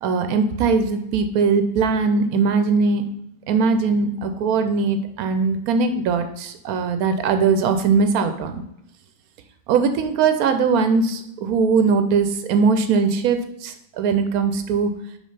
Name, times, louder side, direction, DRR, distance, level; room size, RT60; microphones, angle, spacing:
voice 1, 0.0-3.0 3.5-8.6 9.7-14.9, right 5 dB, 90° right, 8 dB, 1.1 m, -20 dB
5.2 x 3.4 x 5.4 m, 0.81 s
omnidirectional pair, 1.5 m